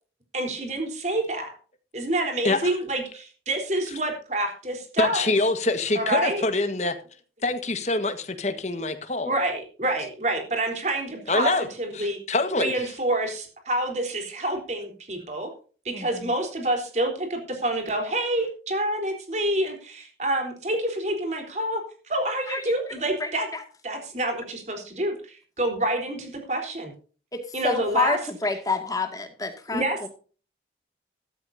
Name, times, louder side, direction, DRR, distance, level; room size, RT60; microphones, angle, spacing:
voice 1, 0.3-1.5 1.9-5.3 6.0-6.4 9.2-12.2 12.6-15.5 15.8-23.5 23.8-26.9 27.5-28.2 29.7-30.1, right 1 dB, 40° right, 4 dB, 3.8 m, -27 dB
voice 2, 5.0-6.9 7.4-9.3 11.3-11.7 12.0-12.7, left 2 dB, 40° left, 9 dB, 1.5 m, -25 dB
voice 3, 15.9-16.3 22.5-22.6 23.2-23.6 27.3-30.1, left 3 dB, 20° left, 5 dB, 2.1 m, -29 dB
13.5 x 13.5 x 2.7 m, 0.39 s
head